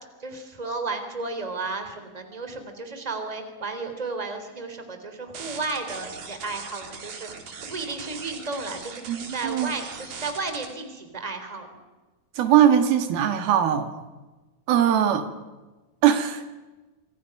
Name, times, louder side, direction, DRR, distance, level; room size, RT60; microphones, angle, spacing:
voice 1, 0.2-7.3 7.6-9.0 9.3-11.8, right 3 dB, 10° right, 2.9 m, -33 dB
sound 1, 5.3-10.7, right 5 dB, 55° right, 4.1 m, -40 dB
voice 2, 9.1-9.7 12.4-13.9 14.7-15.3 16.0-16.4, right 10 dB, 90° right, 3.6 m, -20 dB
26.5 x 26.5 x 6.0 m
omnidirectional pair, 4.2 m